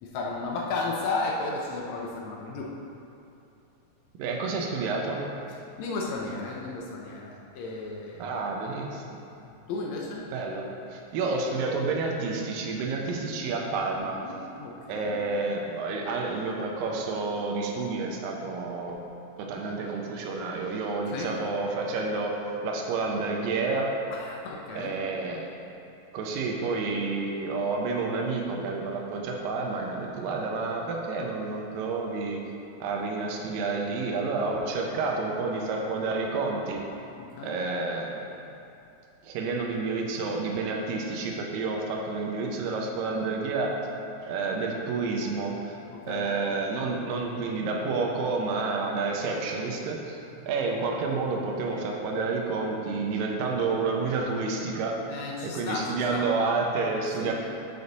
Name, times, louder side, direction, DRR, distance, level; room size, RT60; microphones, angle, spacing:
voice 1, 0.0-2.7 5.8-8.3 9.7-10.2 14.2-15.2 21.1-21.3 24.1-24.9 37.2-37.6 45.9-46.3 55.1-56.3 57.1-57.3, left 3 dB, 75° left, -2 dB, 1.6 m, -34 dB
voice 2, 4.2-5.2 8.2-9.2 10.3-14.2 14.9-19.0 19.4-23.9 24.8-25.5 26.1-32.4 32.8-36.8 37.4-38.4 39.2-43.8 44.2-45.8 46.1-50.2 50.5-55.0 55.4-57.3, right 3 dB, 90° right, 0 dB, 2.5 m, -29 dB
6.8 x 6.7 x 4.0 m, 2.8 s
omnidirectional pair, 3.9 m